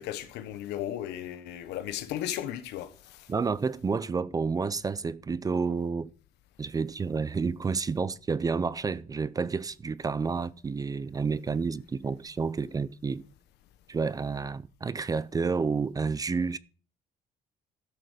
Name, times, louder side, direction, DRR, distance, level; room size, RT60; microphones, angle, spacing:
voice 1, 0.0-3.3, left 12 dB, 85° left, 1.2 m, -35 dB
voice 2, 3.3-6.1 6.6-13.2 13.9-16.6, right 5 dB, 20° right, 0.4 m, -30 dB
13.0 x 6.5 x 5.1 m
cardioid pair, 110°, 17 cm